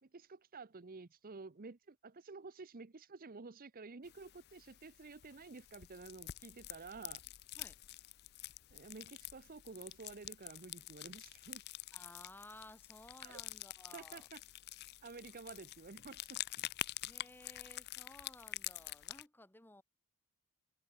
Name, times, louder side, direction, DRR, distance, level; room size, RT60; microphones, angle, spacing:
voice 1, 0.0-7.2 8.7-11.6 13.2-13.4 13.9-14.4 15.0-16.4, right 4 dB, 40° right, 0.7 m, -51 dB
sound 1, 4.0-19.2, left 15 dB, 45° left, 0.4 m, -48 dB
voice 2, 11.9-14.3 17.0-19.8, left 1 dB, 10° left, 2.1 m, -57 dB
head